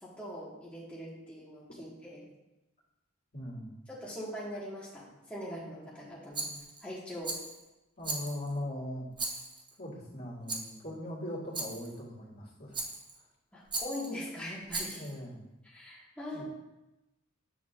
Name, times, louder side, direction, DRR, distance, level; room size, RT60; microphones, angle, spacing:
voice 1, 0.0-2.3 3.9-6.5 6.8-7.3 13.5-15.0 15.6-16.4, left 1 dB, 5° left, -8 dB, 1.3 m, -42 dB
voice 2, 3.3-3.7 8.0-9.1 9.8-12.8 14.9-15.4 16.3-16.4, left 1 dB, 50° left, -7 dB, 2.1 m, -40 dB
Rattle, 6.3-6.8 7.2-7.6 8.0-8.6 9.2-9.7 10.5-10.8 11.5-11.9 12.7-13.2 13.7-14.1 14.7-15.2, right 3 dB, 25° right, 0.8 m, -37 dB
8.1 x 6.4 x 2.4 m, 0.99 s
head